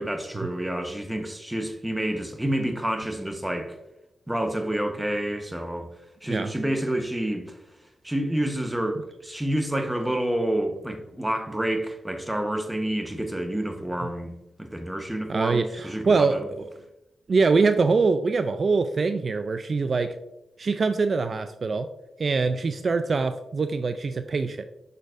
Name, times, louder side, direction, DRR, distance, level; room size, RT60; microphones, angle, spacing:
voice 1, 0.0-3.8 4.3-5.9 6.2-7.6 8.0-14.3 14.6-16.5, right 1 dB, 10° right, 1.1 m, -28 dB
voice 2, 15.3-16.7 17.3-20.2 20.6-21.9 22.2-24.6, right 4 dB, 55° right, 0.4 m, -24 dB
6.5 x 6.3 x 2.5 m
cardioid pair, 55°, 0 cm